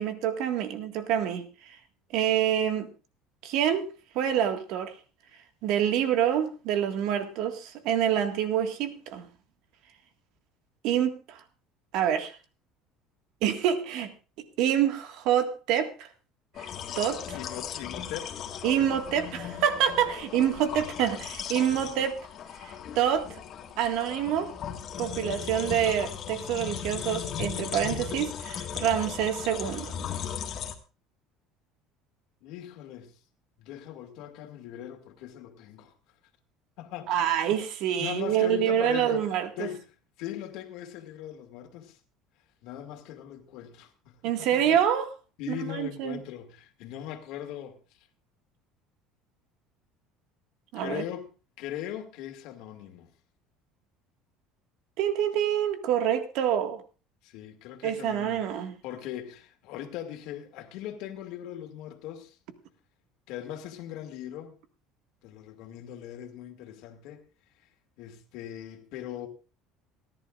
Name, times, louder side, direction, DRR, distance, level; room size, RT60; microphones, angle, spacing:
voice 1, 0.0-1.4 2.1-2.9 3.4-3.9 4.1-4.9 5.6-9.2 10.8-11.4 11.9-12.4 13.4-14.1 14.6-16.1 16.6-16.7 16.9-17.4 18.6-22.1 22.6-23.3 23.8-24.5 25.0-30.0 37.1-39.5 44.2-45.1 45.5-46.2 50.7-51.0 55.0-56.8 57.8-58.7, right 9 dB, 70° right, 1.8 m, -26 dB
sound 1, 16.5-30.7, left 8 dB, 45° left, 1.7 m, -37 dB
voice 2, 17.3-18.4 21.7-22.1 32.4-33.2 33.6-35.9 36.8-37.2 37.5-37.6 38.0-39.2 39.6-39.9 40.2-42.0 42.6-44.8 45.4-47.8 50.8-51.2 51.6-53.1 57.2-58.5 58.8-62.4 63.3-64.6 65.2-67.2 68.0-69.3, left 11 dB, 70° left, 2.2 m, -40 dB
27.5 x 11.0 x 2.5 m
cardioid pair, 125°, 0 cm